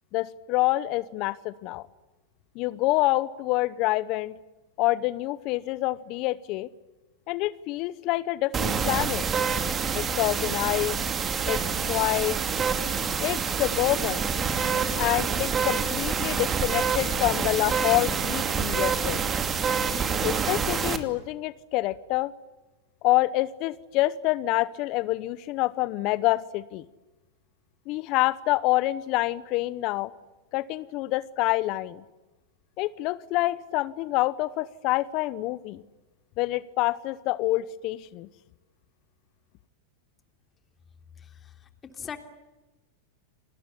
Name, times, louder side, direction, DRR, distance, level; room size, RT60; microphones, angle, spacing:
voice 1, 0.1-1.8 2.5-4.3 4.8-6.7 7.3-9.3 9.9-11.0 11.5-11.6 11.9-12.4 13.2-14.3 15.0-19.2 20.2-22.3 23.0-26.8 27.9-30.1 30.5-32.0 32.8-35.8 36.4-38.3, left 18 dB, 50° left, 17 dB, 0.9 m, -27 dB
sound 1, 8.5-21.0, right 6 dB, 25° right, 2.6 m, -27 dB
voice 2, 41.2-41.5 41.9-42.2, left 7 dB, 25° left, 7 dB, 3.3 m, -40 dB
29.0 x 20.5 x 9.9 m, 1.1 s
hypercardioid pair, 110°, 0 cm